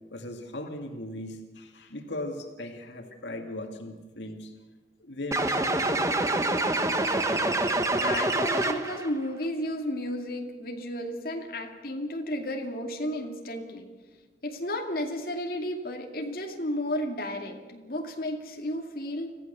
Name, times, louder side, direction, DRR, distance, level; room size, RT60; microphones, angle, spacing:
voice 1, 0.1-4.5 5.0-6.1, left 1 dB, 85° left, 3 dB, 2.2 m, -38 dB
sound 1, 5.3-9.1, right 2 dB, 15° right, 1.2 m, -26 dB
voice 2, 7.9-13.9 14.4-19.3, left 1 dB, 55° left, 1 dB, 2.4 m, -33 dB
26.0 x 16.0 x 6.9 m, 1.3 s
head